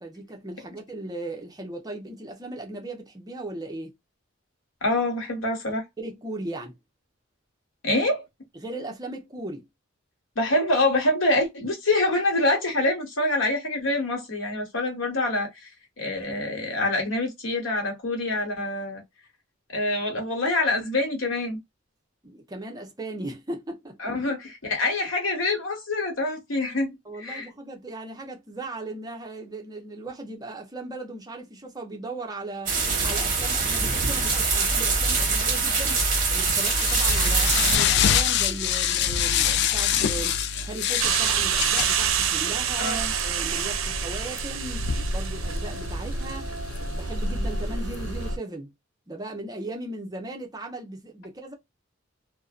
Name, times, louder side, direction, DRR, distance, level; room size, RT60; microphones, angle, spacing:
voice 1, 0.0-3.9 6.0-6.8 8.5-9.7 22.2-24.2 27.1-32.8 33.0-36.0 36.3-40.4 40.6-46.5 46.8-48.7 49.1-51.5, right 2 dB, 20° right, 0.6 m, -37 dB
voice 2, 4.8-5.8 7.8-8.2 10.4-15.5 16.0-19.0 19.7-21.6 24.0-27.5 42.8-43.1, left 2 dB, 80° left, 1.1 m, -25 dB
sound 1, 32.7-37.8, right 4 dB, 40° right, 0.9 m, -23 dB
sound 2, 35.9-48.3, left 8 dB, 60° left, 0.3 m, -27 dB
sound 3, 41.0-48.4, right 6 dB, 80° right, 0.5 m, -27 dB
2.5 x 2.1 x 2.3 m
head